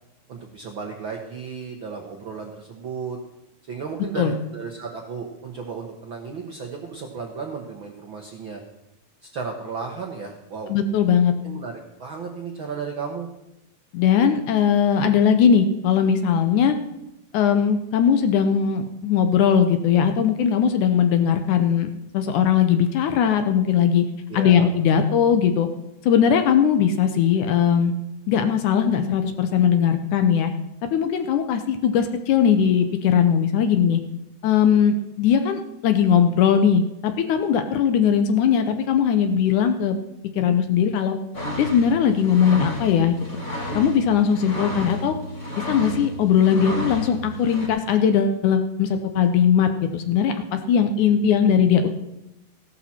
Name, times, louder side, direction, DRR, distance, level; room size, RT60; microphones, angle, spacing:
voice 1, 0.3-3.2 3.7-8.6 9.3-10.7 11.4-13.3 24.3-24.7, right 5 dB, 65° right, 2 dB, 1.2 m, -34 dB
voice 2, 10.7-11.3 13.9-16.8 17.3-21.9 22.1-24.1 24.3-25.7 26.0-27.9 28.3-30.5 30.9-34.0 34.4-40.0 40.4-41.2 41.6-43.2 43.7-45.2 45.7-51.9, left 8 dB, 70° left, 7 dB, 2.1 m, -19 dB
sound 1, 41.3-47.7, left 1 dB, 30° left, 1.5 m, -32 dB
15.5 x 12.0 x 4.3 m, 0.89 s
omnidirectional pair, 4.0 m